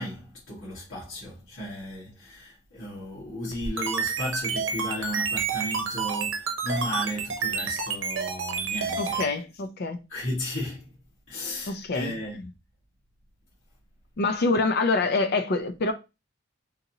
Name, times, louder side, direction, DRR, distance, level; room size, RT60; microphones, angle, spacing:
voice 1, 0.0-9.2 10.1-11.0 11.3-12.4, left 1 dB, 85° left, 1.7 m, -35 dB
sound 1, 3.5-9.3, right 5 dB, 75° right, 0.8 m, -29 dB
voice 2, 9.0-10.0 11.7-12.4 14.2-15.9, left 3 dB, 55° left, 0.5 m, -26 dB
3.8 x 2.8 x 2.7 m
head